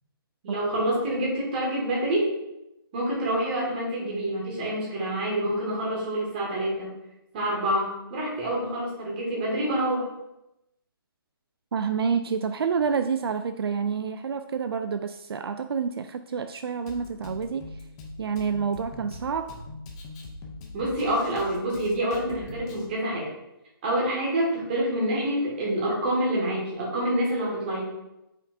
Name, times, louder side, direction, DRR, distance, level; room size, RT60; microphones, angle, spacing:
voice 1, 0.4-2.3 2.9-6.9 7.3-10.1 20.7-23.3 23.8-27.8, right 1 dB, 25° right, -4 dB, 2.0 m, -27 dB
voice 2, 11.7-17.7 18.2-19.6, right 6 dB, 80° right, 9 dB, 0.4 m, -28 dB
Drum kit, 16.9-22.9, left 2 dB, 15° left, 0.5 m, -42 dB
8.7 x 5.0 x 2.7 m, 0.91 s
hypercardioid pair, 170°, 13 cm